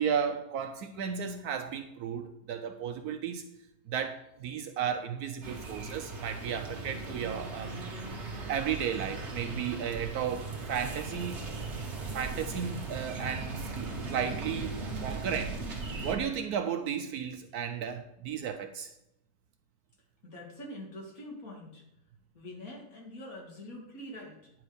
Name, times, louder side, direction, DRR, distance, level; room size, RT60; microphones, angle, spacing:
voice 1, 0.0-3.4 3.9-7.7 8.5-11.4 12.1-14.7 15.0-15.6 16.0-18.9, right 7 dB, 70° right, 8 dB, 1.0 m, -34 dB
sound 1, 5.4-16.2, right 3 dB, 45° right, 1.4 m, -38 dB
voice 2, 20.2-21.8 22.3-24.5, left 1 dB, 55° left, -1 dB, 2.3 m, -44 dB
9.7 x 4.7 x 5.0 m, 0.84 s
omnidirectional pair, 1.9 m